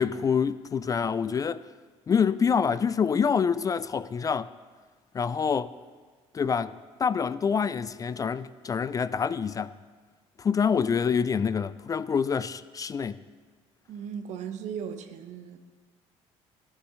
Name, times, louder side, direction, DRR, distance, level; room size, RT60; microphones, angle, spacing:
voice 1, 0.0-1.6 2.1-4.5 5.1-5.7 6.3-6.7 7.0-9.8 10.4-13.2, left 6 dB, 30° left, 0.3 m, -26 dB
voice 2, 13.9-15.6, right 7 dB, 70° right, 0.9 m, -37 dB
12.0 x 11.5 x 3.2 m
cardioid pair, 95°, 13 cm